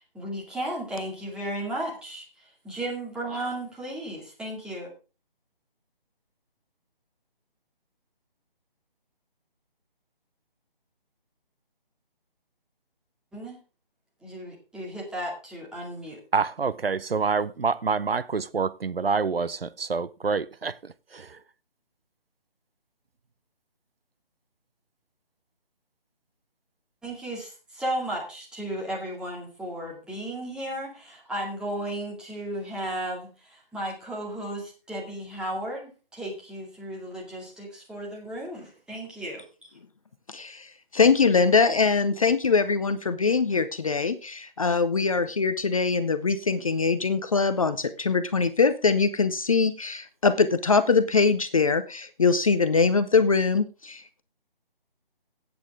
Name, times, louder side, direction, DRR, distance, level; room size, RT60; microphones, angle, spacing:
voice 1, 0.1-4.9 13.3-13.6 14.2-16.2 27.0-39.7, right 1 dB, 5° right, 2.3 m, -34 dB
voice 2, 16.3-21.4, right 5 dB, 80° right, 0.7 m, -27 dB
voice 3, 40.3-54.2, left 4 dB, 35° left, 0.7 m, -23 dB
15.5 x 8.7 x 3.6 m
figure-of-eight pair, 150°, 29 cm